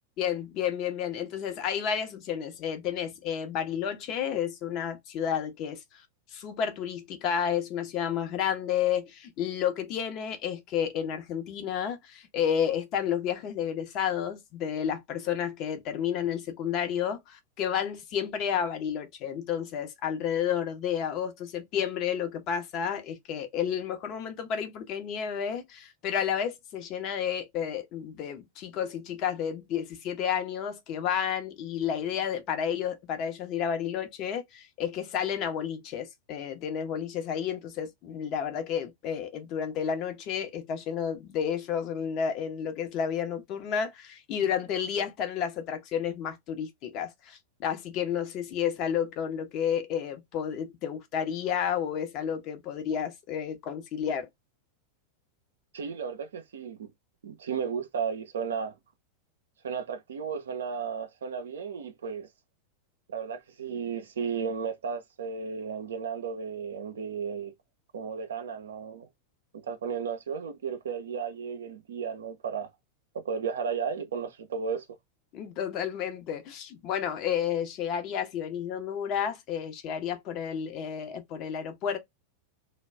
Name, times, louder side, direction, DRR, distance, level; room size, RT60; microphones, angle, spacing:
voice 1, 0.2-6.1 6.3-54.3 75.3-82.0, left 8 dB, 40° left, 0.6 m, -31 dB
voice 2, 55.7-56.9 57.2-58.8 59.6-62.3 63.1-67.5 67.9-69.1 69.5-72.7 73.2-74.9, right 6 dB, 65° right, 0.4 m, -34 dB
2.2 x 2.0 x 3.2 m
figure-of-eight pair, 90°, 0 cm